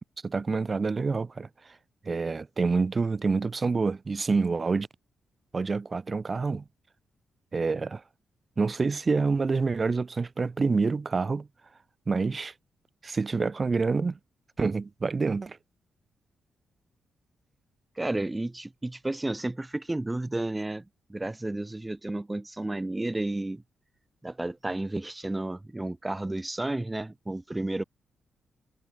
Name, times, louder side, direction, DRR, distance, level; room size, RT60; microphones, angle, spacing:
voice 1, 0.2-1.5 2.0-4.9 5.5-6.6 7.5-8.0 8.6-11.5 12.1-12.5 13.0-14.2 14.6-15.6, right 4 dB, 40° right, 3.4 m, -27 dB
voice 2, 18.0-20.8 21.1-23.6 24.2-27.8, right 2 dB, 20° right, 6.1 m, -32 dB
hypercardioid pair, 45°, 0 cm